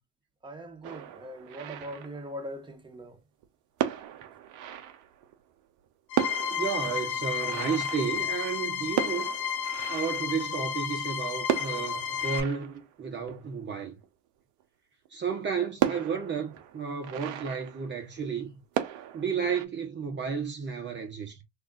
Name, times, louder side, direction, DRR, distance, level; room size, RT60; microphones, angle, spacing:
voice 1, 0.4-3.2, equal, 15° right, 1.1 m, -41 dB
sound 1, 0.8-2.7 3.4-3.5 3.8-5.5 5.8-5.9 6.1-10.9 11.4-14.1 14.6-14.7 15.0-15.1 15.8-18.4 18.7-19.6, right 11 dB, 65° right, 0.8 m, -35 dB
sound 2, 6.1-12.4, left 8 dB, 75° left, 0.9 m, -32 dB
voice 2, 6.5-9.3 9.9-14.0 15.1-18.5 19.1-21.4, right 6 dB, 35° right, 0.9 m, -32 dB
3.2 x 2.4 x 3.7 m
hypercardioid pair, 75°, 34 cm